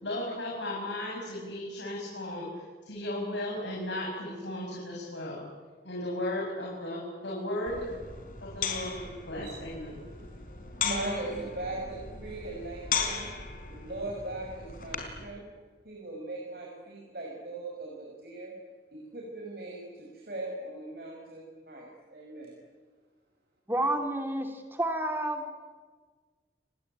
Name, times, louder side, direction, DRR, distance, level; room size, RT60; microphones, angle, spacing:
voice 1, 0.0-2.5 2.8-5.4 5.8-7.9 8.4-10.0, left 1 dB, 85° left, -3 dB, 7.1 m, -35 dB
sound 1, 7.7-15.3, left 6 dB, 50° left, 4.7 m, -37 dB
voice 2, 10.1-13.3 13.7-15.5 15.8-18.5 18.9-22.5, right 2 dB, 55° right, -1 dB, 5.8 m, -39 dB
voice 3, 23.7-25.4, right 1 dB, 10° right, 5 dB, 2.6 m, -30 dB
29.0 x 20.5 x 9.2 m, 1.5 s
head